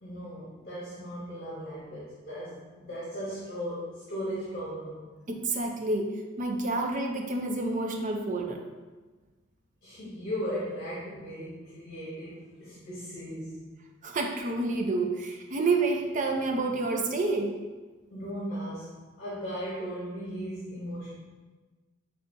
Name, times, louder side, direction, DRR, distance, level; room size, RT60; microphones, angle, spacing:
voice 1, 0.0-5.0 9.8-13.6 18.1-21.1, equal, 50° left, -8 dB, 1.0 m, -37 dB
voice 2, 5.3-6.1 6.4-8.6 14.0-17.5, right 3 dB, 40° right, 2 dB, 0.5 m, -29 dB
5.2 x 3.3 x 2.7 m, 1.3 s
head